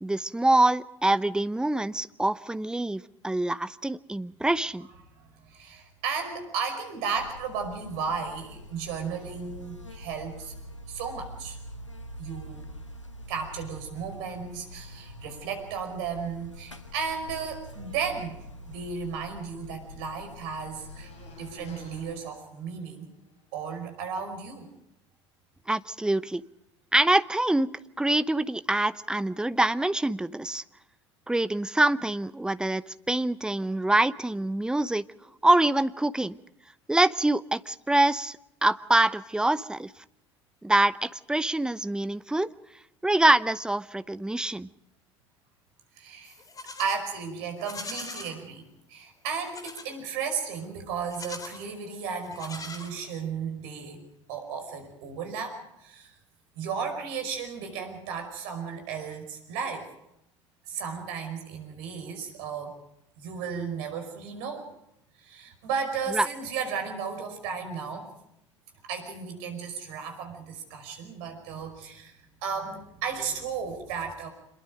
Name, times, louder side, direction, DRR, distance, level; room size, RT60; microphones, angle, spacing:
voice 1, 0.0-4.9 25.7-26.4 26.9-27.7 28.0-30.6 31.3-35.0 35.4-36.4 36.9-39.9 40.6-42.5 43.0-44.7 66.1-66.3, right 2 dB, 5° right, 16 dB, 0.8 m, -25 dB
voice 2, 5.5-10.5 10.9-11.6 12.2-12.6 13.3-18.4 18.7-21.1 21.4-23.1 23.5-24.7 46.0-46.4 46.8-48.6 48.9-54.0 54.3-56.2 56.6-59.9 60.7-62.8 63.2-64.7 65.2-68.1 68.8-72.1 72.4-74.3, right 6 dB, 60° right, 6 dB, 5.3 m, -34 dB
Buzz, 7.1-22.1, left 1 dB, 90° left, 1.2 m, -45 dB
sound 1, 19.6-23.4, left 1 dB, 45° left, 6.8 m, -53 dB
Livestock farm animals working animals, 46.2-47.0 47.6-48.3 49.4-49.9 51.0-51.7 52.2-53.3, left 3 dB, 25° left, 4.2 m, -41 dB
26.5 x 22.0 x 5.1 m, 0.81 s
figure-of-eight pair, 70°, 15 cm